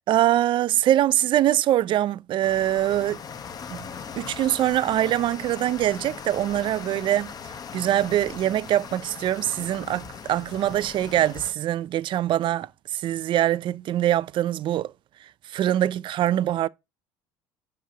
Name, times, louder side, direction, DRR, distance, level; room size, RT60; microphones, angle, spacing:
voice 1, 0.1-3.2 3.7-3.9 4.2-7.3 7.7-14.9 15.2-16.7, right 12 dB, 50° right, 0.4 m, -23 dB
sound 1, 2.4-11.5, left 6 dB, 35° left, 0.9 m, -39 dB
5.6 x 5.6 x 4.9 m
supercardioid pair, 105°, 11 cm